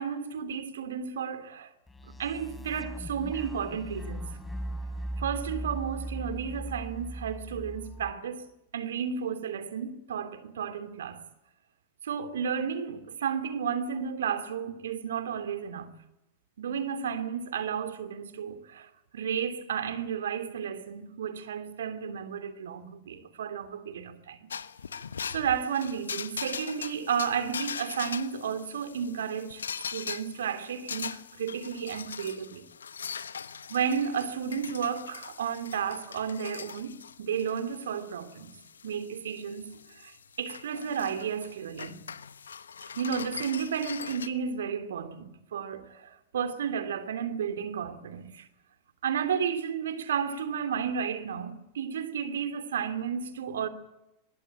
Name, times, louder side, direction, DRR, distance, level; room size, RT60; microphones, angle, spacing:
voice 1, 0.0-1.7 2.2-4.3 5.2-8.4 8.7-11.2 12.0-15.9 16.6-24.5 24.9-25.0 25.3-32.7 33.7-38.5 38.8-42.0 42.9-48.5 49.0-53.7, right 7 dB, 65° right, 2.8 m, -32 dB
sound 1, 1.9-8.1, right 1 dB, 10° left, 3.4 m, -38 dB
sound 2, 24.5-44.3, left 6 dB, 70° left, 1.1 m, -41 dB
23.5 x 22.0 x 9.0 m
figure-of-eight pair, 90°, 0 cm